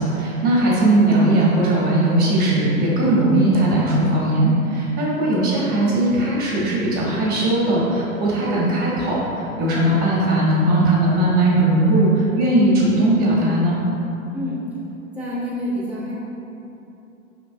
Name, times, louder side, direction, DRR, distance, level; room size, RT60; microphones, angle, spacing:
voice 1, 0.0-13.8, right 1 dB, 20° right, -5 dB, 0.8 m, -18 dB
voice 2, 15.2-16.1, equal, 10° left, -15 dB, 0.3 m, -27 dB
5.0 x 3.1 x 2.6 m, 2.9 s
hypercardioid pair, 125°, 44 cm